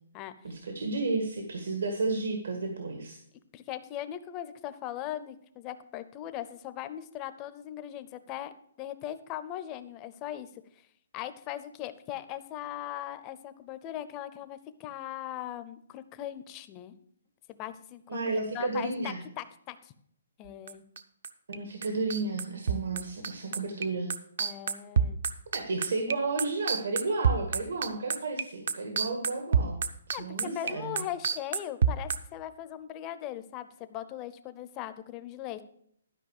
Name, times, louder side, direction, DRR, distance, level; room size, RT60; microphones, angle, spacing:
voice 1, 0.4-3.2 18.1-19.2 21.5-24.1 25.5-29.8 30.1-31.0, right 3 dB, 75° right, 4 dB, 1.8 m, -32 dB
voice 2, 3.5-10.5 11.1-16.9 17.5-18.0 18.3-19.9 20.4-20.8 24.4-25.2 30.1-35.6, left 12 dB, 15° left, 12 dB, 0.5 m, -39 dB
sound 1, 20.5-21.6 21.8-32.2, right 6 dB, 50° right, 0.6 m, -27 dB
12.5 x 5.4 x 6.5 m, 0.67 s
hypercardioid pair, 175°, 0 cm